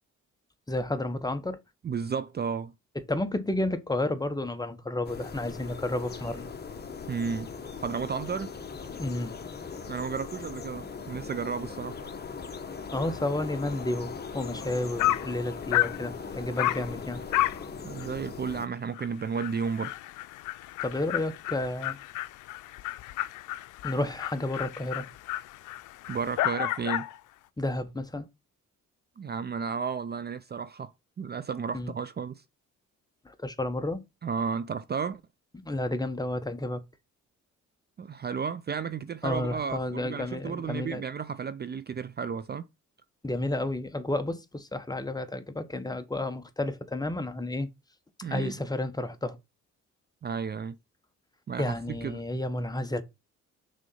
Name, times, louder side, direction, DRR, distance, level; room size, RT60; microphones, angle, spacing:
voice 1, 0.7-1.6 3.1-6.5 9.0-9.4 12.9-17.2 20.8-22.0 23.8-25.1 27.6-28.3 31.7-31.9 33.2-34.0 35.6-36.8 39.2-41.0 43.2-47.7 48.3-49.4 51.6-53.0, left 1 dB, 15° left, 1.1 m, -31 dB
voice 2, 1.8-2.7 7.1-7.5 7.8-8.5 9.9-12.0 17.8-19.9 26.1-27.1 29.2-30.9 31.2-32.4 34.2-35.2 38.0-42.7 48.2-48.6 50.2-50.8 51.5-52.2, right 6 dB, 35° right, 0.5 m, -33 dB
sound 1, 5.0-18.7, left 5 dB, 35° left, 1.2 m, -40 dB
Dog, 14.6-14.7 15.0-15.3 15.7-16.0 16.6-16.9 17.3-17.6 18.0-18.1 18.5-18.6 19.0-19.1 19.4-27.2, left 16 dB, 85° left, 0.5 m, -31 dB
6.3 x 4.0 x 5.5 m
cardioid pair, 90°, 30 cm